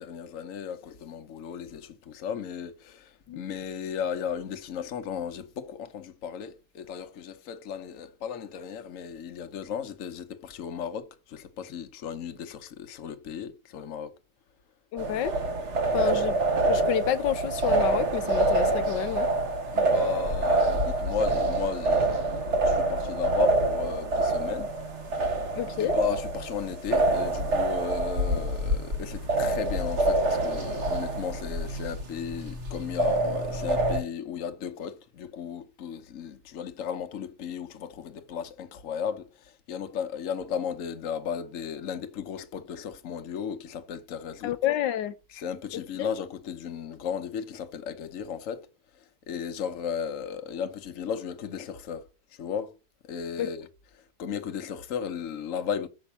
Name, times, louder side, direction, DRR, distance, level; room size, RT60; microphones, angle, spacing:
voice 1, 0.0-14.1 15.9-16.0 19.7-24.7 25.8-44.6 45.3-48.7 49.3-52.0 52.3-52.7 53.0-53.7 54.2-55.9, left 7 dB, 55° left, 1.2 m, -35 dB
voice 2, 14.9-15.3 15.9-16.4 16.7-19.3 25.6-25.9 44.4-45.1 45.7-46.1 53.4-53.5, left 11 dB, 85° left, 1.4 m, -29 dB
sound 1, 15.0-34.0, right 2 dB, 45° right, 1.6 m, -26 dB
6.4 x 5.6 x 6.9 m
omnidirectional pair, 1.9 m